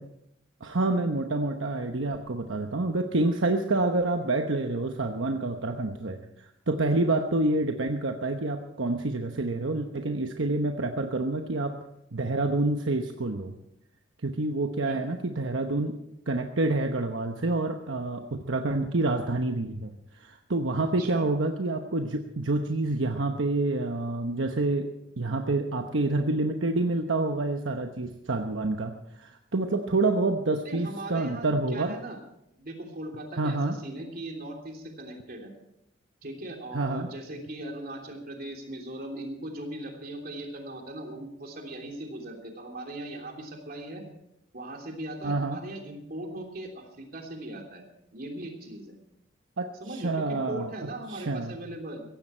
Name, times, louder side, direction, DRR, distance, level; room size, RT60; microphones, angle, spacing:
voice 1, 0.6-6.2 6.7-11.7 12.1-13.5 14.2-16.0 16.3-19.9 20.2-24.9 25.2-31.9 33.4-33.7 36.7-37.1 45.2-45.6 49.6-51.5, right 2 dB, 75° right, 5 dB, 1.0 m, -28 dB
voice 2, 30.6-32.2 32.5-35.5 36.2-44.0 44.5-47.9 48.1-48.9 49.8-52.0, right 1 dB, 50° right, 2 dB, 3.2 m, -39 dB
16.5 x 15.0 x 4.5 m, 0.81 s
head